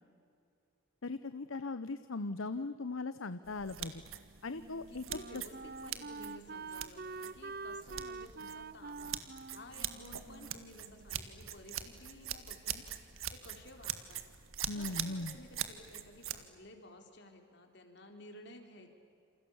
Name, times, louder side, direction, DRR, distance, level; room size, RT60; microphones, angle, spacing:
voice 1, 1.0-4.0 4.4-5.0 5.3-5.4 14.7-15.4, left 3 dB, 80° left, 12 dB, 0.9 m, -39 dB
sound 1, 3.4-16.4, right 10 dB, 90° right, 1.8 m, -43 dB
Wind instrument woodwind instrument, 4.1-11.4, right 4 dB, 45° right, 0.6 m, -47 dB
voice 2, 4.9-9.2 9.5-12.9 13.3-14.2 14.7-18.9, left 1 dB, 55° left, 4 dB, 3.8 m, -54 dB
28.5 x 28.0 x 7.2 m, 2.5 s
head